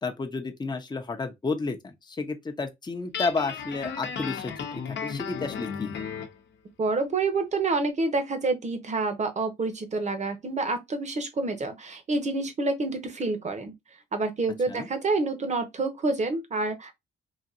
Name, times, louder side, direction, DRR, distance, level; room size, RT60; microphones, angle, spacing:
voice 1, 0.0-4.5 4.9-5.9 14.7-14.9, left 4 dB, 20° left, 0.7 m, -31 dB
Guitar, 3.1-6.4, left 6 dB, 65° left, 0.9 m, -34 dB
voice 2, 6.8-13.7 14.1-16.9, right 3 dB, 35° right, 1.0 m, -28 dB
4.1 x 2.5 x 2.5 m
cardioid pair, 90°, 20 cm